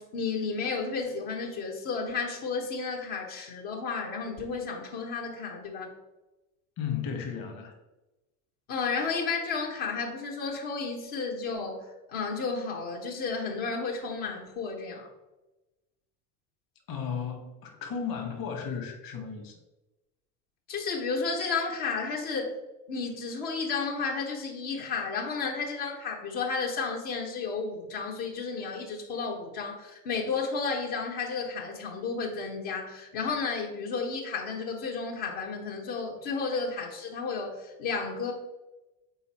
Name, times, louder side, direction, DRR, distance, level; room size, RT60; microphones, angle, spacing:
voice 1, 0.0-5.9 8.7-15.1 20.7-22.5 22.9-38.3, left 4 dB, 75° left, -1 dB, 1.3 m, -32 dB
voice 2, 6.8-7.8 16.9-19.6, left 7 dB, 50° left, 3 dB, 1.3 m, -34 dB
5.5 x 4.2 x 4.2 m, 1.0 s
hypercardioid pair, 70°, 43 cm